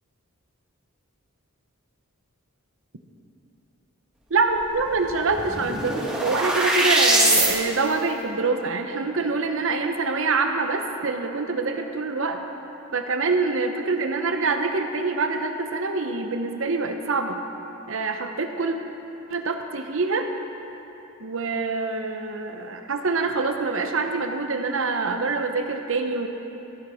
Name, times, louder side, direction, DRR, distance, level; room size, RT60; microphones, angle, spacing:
voice 1, 4.3-12.4 12.9-17.4 17.9-18.8 19.3-20.3 21.2-26.3, right 3 dB, 60° right, 5 dB, 0.8 m, -25 dB
sound 1, 4.7-4.8 5.0-7.5, right 1 dB, 5° right, 1.4 m, -22 dB
14.0 x 7.8 x 4.9 m, 3.0 s
head